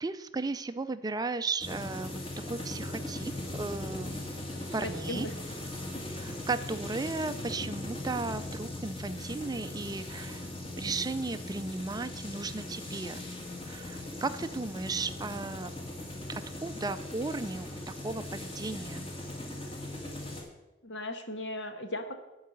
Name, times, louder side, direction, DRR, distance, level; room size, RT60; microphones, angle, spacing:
voice 1, 0.0-2.2 2.5-4.2 4.7-5.3 6.1-10.5 10.8-13.3 13.7-15.7 16.3-17.7 18.0-19.1, right 3 dB, 20° right, 11 dB, 0.4 m, -35 dB
sound 1, 1.6-20.4, left 1 dB, 30° left, 2.1 m, -39 dB
sound 2, 2.5-20.3, equal, 10° left, 1.6 m, -57 dB
voice 2, 4.8-5.3 20.8-22.1, left 1 dB, 70° left, 6 dB, 1.3 m, -37 dB
11.5 x 4.8 x 8.3 m, 1.1 s
head